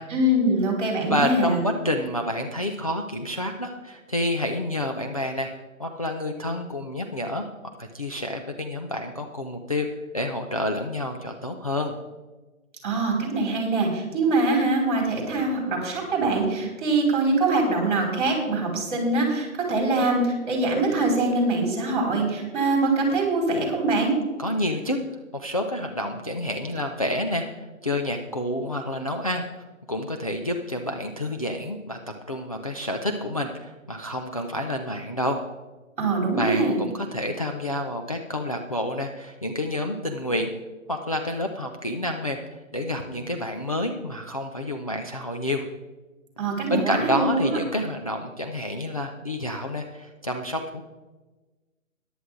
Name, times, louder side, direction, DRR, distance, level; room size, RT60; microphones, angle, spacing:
voice 1, 0.1-1.6 12.8-24.2 36.0-36.8 46.4-47.6, right 2 dB, 35° right, 0 dB, 4.8 m, -23 dB
voice 2, 1.1-5.5 5.8-7.5 7.8-9.9 10.1-11.9 24.4-25.0 25.3-29.4 29.9-32.0 32.3-35.4 36.3-40.5 40.9-45.7 46.7-50.9, left 1 dB, 25° left, 2 dB, 0.5 m, -29 dB
14.0 x 11.0 x 3.8 m, 1.2 s
figure-of-eight pair, 155°, 41 cm